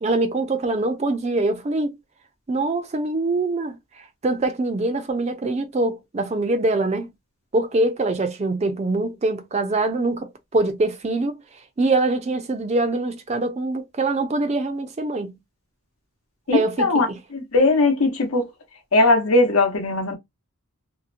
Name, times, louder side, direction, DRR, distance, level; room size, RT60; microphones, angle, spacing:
voice 1, 0.0-1.9 2.5-3.8 4.2-7.1 7.5-11.4 11.8-15.3 16.5-16.9, right 2 dB, 30° right, 0.4 m, -23 dB
voice 2, 16.5-17.1 17.3-18.5 18.9-20.1, left 2 dB, 75° left, 0.8 m, -19 dB
2.7 x 2.0 x 2.4 m
head